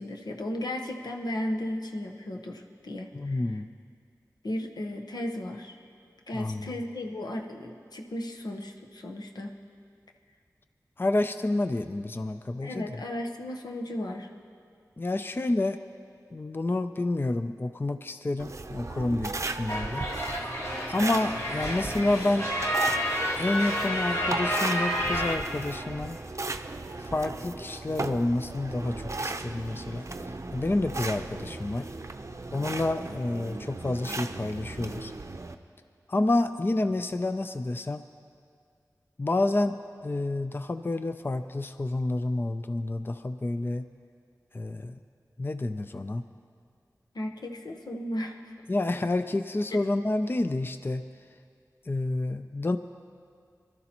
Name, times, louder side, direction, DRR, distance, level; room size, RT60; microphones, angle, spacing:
voice 1, 0.0-3.6 4.4-5.8 6.3-9.6 12.6-14.3 47.1-48.5 49.7-49.8, left 1 dB, 90° left, 2 dB, 1.0 m, -35 dB
voice 2, 3.1-3.7 6.3-6.7 11.0-12.9 15.0-15.8 16.3-20.0 20.9-22.5 23.4-26.2 27.0-30.1 30.5-31.9 32.5-35.1 36.1-38.0 39.2-39.7 40.0-43.9 44.5-45.0 45.4-46.2 48.7-51.0 51.9-52.8, left 2 dB, 35° left, 10 dB, 0.4 m, -29 dB
sound 1, 18.4-35.5, right 2 dB, 45° right, 0.6 m, -37 dB
sound 2, 19.7-25.4, equal, 55° left, 2.3 m, -30 dB
23.0 x 13.0 x 3.0 m, 2.2 s
wide cardioid pair, 55°, 7 cm